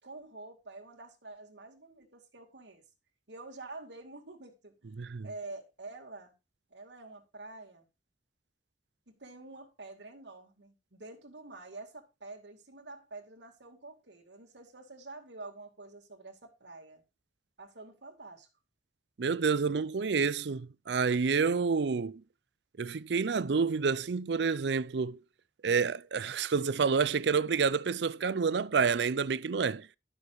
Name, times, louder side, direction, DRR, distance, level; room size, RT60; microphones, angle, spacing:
voice 1, 0.0-2.8 3.3-4.7 5.2-6.3 6.7-7.9 9.1-17.0 17.6-18.5, right 2 dB, 90° right, 2.4 m, -47 dB
voice 2, 5.0-5.3 19.2-22.2 22.8-25.2 25.6-29.9, right 5 dB, 75° right, 0.5 m, -29 dB
12.0 x 6.3 x 4.7 m
head